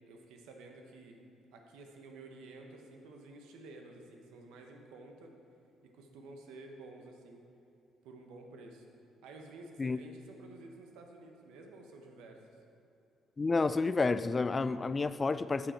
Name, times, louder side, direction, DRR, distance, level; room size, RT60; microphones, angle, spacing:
voice 1, 0.1-1.2 1.5-5.3 5.9-7.4 8.0-8.8 9.2-12.4, right 2 dB, 80° right, 1.0 m, -51 dB
voice 2, 13.4-15.7, left 3 dB, 30° left, 0.3 m, -30 dB
8.6 x 7.8 x 4.4 m
supercardioid pair, 60°, 0 cm